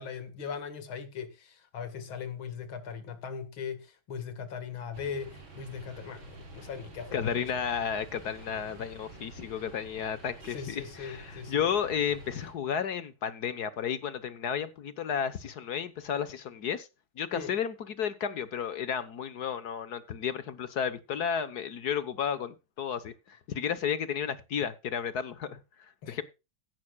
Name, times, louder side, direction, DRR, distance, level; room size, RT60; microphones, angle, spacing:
voice 1, 0.0-7.5 10.5-11.6 17.3-17.5 26.0-26.2, left 6 dB, 90° left, 2.6 m, -39 dB
sound 1, 4.9-12.5, right 1 dB, 85° right, 4.1 m, -49 dB
voice 2, 7.1-16.9 17.2-25.6 26.1-26.2, left 8 dB, 60° left, 1.4 m, -32 dB
16.0 x 11.5 x 2.3 m
omnidirectional pair, 2.2 m